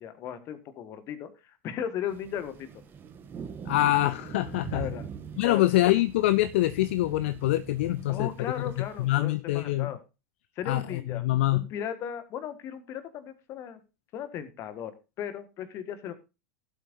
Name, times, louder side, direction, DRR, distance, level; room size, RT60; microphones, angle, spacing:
voice 1, 0.0-2.7 4.7-5.0 5.4-5.6 8.1-10.0 10.6-11.2 11.5-13.8 14.1-16.1, left 9 dB, 35° left, 1.6 m, -36 dB
sound 1, 2.1-9.2, right 6 dB, 25° right, 1.6 m, -42 dB
voice 2, 3.7-4.9 5.4-8.3 8.8-9.9 10.7-11.7, left 16 dB, 55° left, 0.5 m, -25 dB
16.5 x 7.9 x 2.6 m
figure-of-eight pair, 85°, 8 cm